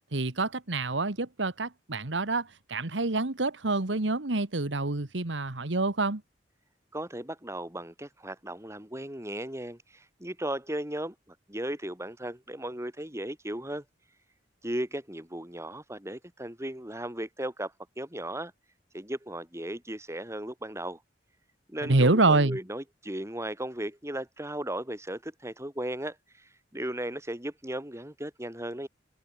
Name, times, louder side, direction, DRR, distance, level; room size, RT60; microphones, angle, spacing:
voice 1, 0.1-6.2 21.8-22.6, right 2 dB, 90° right, 1.7 m, -27 dB
voice 2, 6.9-13.8 14.6-18.5 18.9-21.0 21.7-28.9, right 1 dB, 15° right, 6.2 m, -36 dB
open air
head